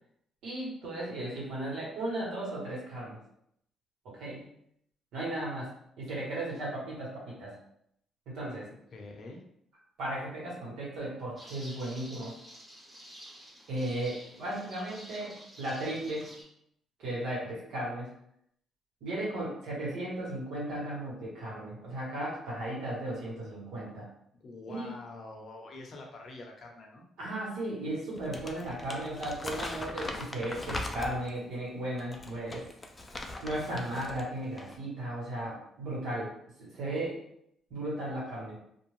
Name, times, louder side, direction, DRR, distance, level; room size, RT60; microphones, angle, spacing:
voice 1, 0.4-3.2 4.0-4.5 5.1-5.7 6.0-7.5 8.3-8.7 10.0-12.3 13.7-16.4 17.0-18.1 19.0-24.1 24.7-24.9 27.2-32.6 33.4-36.3 36.6-37.2 37.7-38.6, right 1 dB, 80° right, -5 dB, 1.4 m, -35 dB
voice 2, 8.9-9.4 24.4-27.1, left 2 dB, 55° left, 1 dB, 0.7 m, -46 dB
sound 1, 11.4-16.4, equal, 15° right, 1.0 m, -50 dB
Crumpling crinkling, 28.2-31.4 32.0-34.2 34.5-34.8, left 2 dB, 25° left, 0.4 m, -40 dB
2.5 x 2.4 x 3.2 m, 0.71 s
cardioid pair, 90°, 0 cm